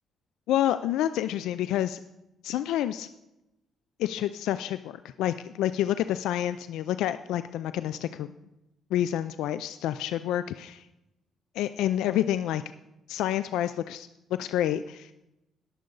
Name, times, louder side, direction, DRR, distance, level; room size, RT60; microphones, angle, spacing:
voice 1, 0.5-2.0 2.4-3.1 4.0-8.3 8.9-10.9 11.5-12.6 13.1-14.1 14.4-15.1, left 12 dB, 90° left, 12 dB, 0.4 m, -28 dB
20.0 x 7.7 x 3.9 m, 0.92 s
cardioid pair, 90°, 0 cm